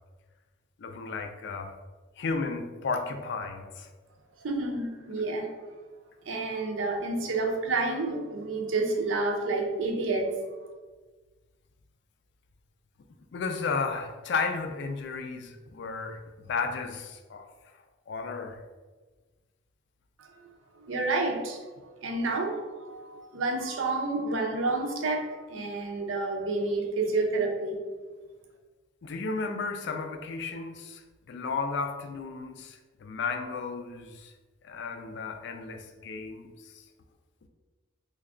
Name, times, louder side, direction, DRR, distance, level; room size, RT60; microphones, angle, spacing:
voice 1, 0.8-1.7 2.2-3.9 13.3-17.5 18.1-18.6 29.0-34.3 34.6-36.8, left 4 dB, 60° left, 5 dB, 0.4 m, -34 dB
voice 2, 4.4-5.5 6.3-10.4 20.2-20.5 20.9-27.9, right 3 dB, 75° right, 1 dB, 0.6 m, -29 dB
3.2 x 2.3 x 3.6 m, 1.3 s
head